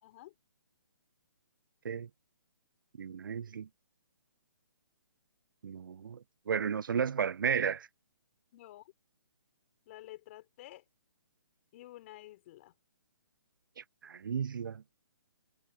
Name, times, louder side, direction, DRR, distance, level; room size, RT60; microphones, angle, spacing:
voice 1, 0.0-0.3 8.5-8.9 9.9-10.8 11.7-12.7, left 16 dB, 35° left, 3.9 m, -51 dB
voice 2, 3.0-3.7 5.6-6.2 6.5-7.9 13.8-14.8, right 7 dB, 70° right, 0.5 m, -33 dB
hypercardioid pair, 145°, 11 cm